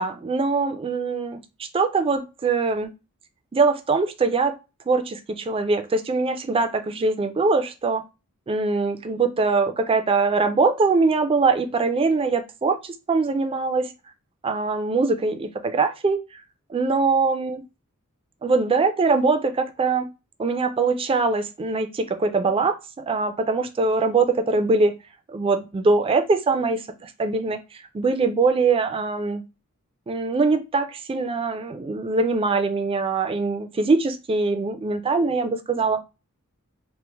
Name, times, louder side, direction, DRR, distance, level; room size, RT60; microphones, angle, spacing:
voice 1, 0.0-2.9 3.5-4.6 4.9-8.0 8.5-13.9 14.4-16.4 16.7-17.6 18.4-20.1 20.4-24.9 25.3-27.6 27.9-29.4 30.1-36.0, right 3 dB, 25° right, 0.3 m, -22 dB
3.1 x 2.1 x 3.3 m
head